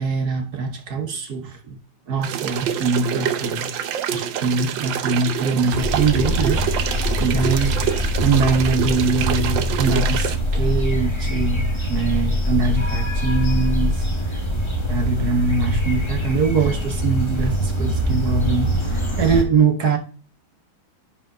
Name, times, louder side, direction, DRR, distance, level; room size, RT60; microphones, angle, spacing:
voice 1, 0.0-1.6 2.1-3.7 4.1-14.0 14.3-14.4 14.9-20.0, right 4 dB, 55° right, 1.6 m, -23 dB
sound 1, 2.2-10.4, right 9 dB, 70° right, 1.5 m, -26 dB
sound 2, 5.7-19.4, equal, 15° left, 1.4 m, -23 dB
10.5 x 5.1 x 3.7 m
omnidirectional pair, 2.2 m